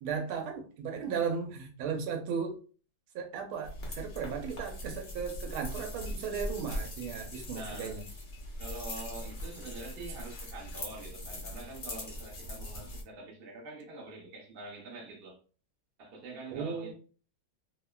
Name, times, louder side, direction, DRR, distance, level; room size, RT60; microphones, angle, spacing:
voice 1, 0.0-2.6 3.1-8.0 16.5-16.9, right 6 dB, 85° right, 1.5 m, -36 dB
sound 1, 3.6-13.0, left 1 dB, 75° left, 0.5 m, -41 dB
voice 2, 7.5-8.0 8.6-15.4 16.0-16.9, right 2 dB, 60° right, 0.6 m, -45 dB
3.5 x 2.1 x 2.2 m
omnidirectional pair, 2.2 m